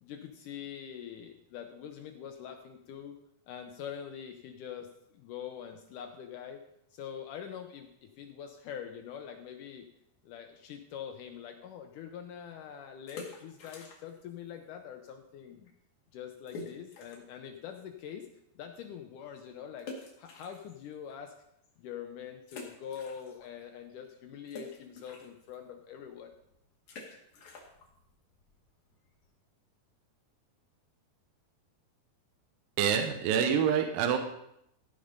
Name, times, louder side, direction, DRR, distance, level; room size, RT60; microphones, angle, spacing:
voice 1, 0.0-3.2 3.5-6.6 6.9-9.9 10.2-15.7 16.1-18.3 18.6-19.9 20.2-21.3 21.8-26.3, left 8 dB, 75° left, 5 dB, 2.0 m, -44 dB
sound 1, 13.1-14.3 14.6-14.7 15.3-15.4 15.6-15.7 16.5-17.4 17.9-18.0 19.8-21.1 21.6-21.7 22.4-23.6 23.9-29.4, left 3 dB, 55° left, 3.2 m, -48 dB
voice 2, 32.8-34.2, right 8 dB, 75° right, 5 dB, 2.5 m, -26 dB
15.5 x 5.5 x 5.2 m, 0.78 s
omnidirectional pair, 4.3 m